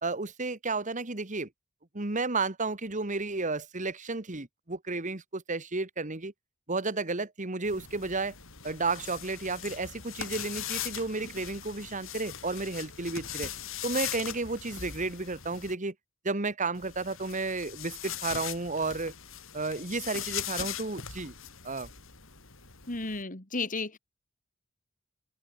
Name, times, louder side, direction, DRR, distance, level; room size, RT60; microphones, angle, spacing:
voice 1, 0.0-1.5 1.9-6.3 6.7-8.3 8.6-13.5 13.8-15.9 16.2-19.1 19.5-21.3 21.6-21.9, right 3 dB, 35° right, 1.7 m, -32 dB
sound 1, 7.6-15.7 16.7-23.2, left 10 dB, 65° left, 6.1 m, -40 dB
voice 2, 22.9-24.0, left 3 dB, 40° left, 2.5 m, -33 dB
head